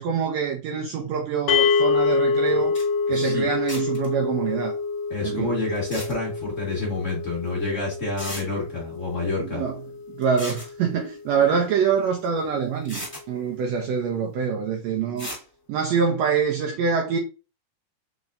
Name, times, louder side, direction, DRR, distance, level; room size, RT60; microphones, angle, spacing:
voice 1, 0.0-2.7 3.1-4.8 5.2-5.5 9.4-9.7 10.2-15.3 15.7-17.2, right 6 dB, 85° right, 1.4 m, -25 dB
sound 1, 1.5-11.8, left 5 dB, 90° left, 2.3 m, -27 dB
sound 2, 2.5-2.6 2.7-2.9 3.7-4.1 5.8-6.1 7.5-7.6 8.2-8.4 10.2-10.7 12.2-12.3 12.8-13.2 15.2-15.4, equal, 5° left, 1.8 m, -35 dB
voice 2, 3.1-3.5 5.1-9.6, left 2 dB, 35° left, 1.2 m, -28 dB
4.4 x 4.1 x 2.5 m
omnidirectional pair, 3.8 m